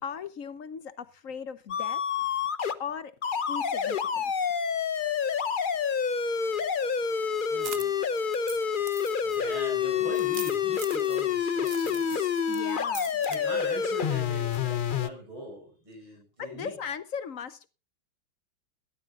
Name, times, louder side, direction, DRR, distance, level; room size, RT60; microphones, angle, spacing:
voice 1, 0.0-2.0 2.8-3.2 3.5-4.6 12.0-12.2 12.5-13.2 16.4-17.7, left 7 dB, 55° left, 1.0 m, -38 dB
sound 1, 1.7-2.7 3.2-15.1, left 7 dB, 75° left, 0.4 m, -28 dB
sound 2, 7.0-11.3 11.6-12.1 12.5-13.4 13.7-13.8 14.5-14.7, right 7 dB, 55° right, 0.7 m, -44 dB
sound 3, 7.4-7.5 8.2-8.3 8.5-8.6 8.8-9.6 10.1-11.3 11.7-13.3, right 2 dB, 30° right, 4.8 m, -44 dB
voice 2, 7.5-8.0 9.2-12.4 13.3-16.7, equal, 80° right, 6.0 m, -41 dB
21.0 x 13.0 x 2.4 m
omnidirectional pair, 2.2 m